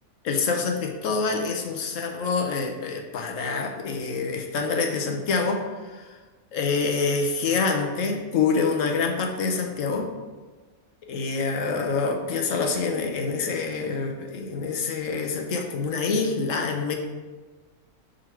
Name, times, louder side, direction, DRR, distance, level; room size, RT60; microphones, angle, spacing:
voice 1, 0.2-6.2 6.5-10.1 11.0-16.9, left 4 dB, 70° left, 3 dB, 1.1 m, -26 dB
6.2 x 3.9 x 4.3 m, 1.3 s
omnidirectional pair, 1.4 m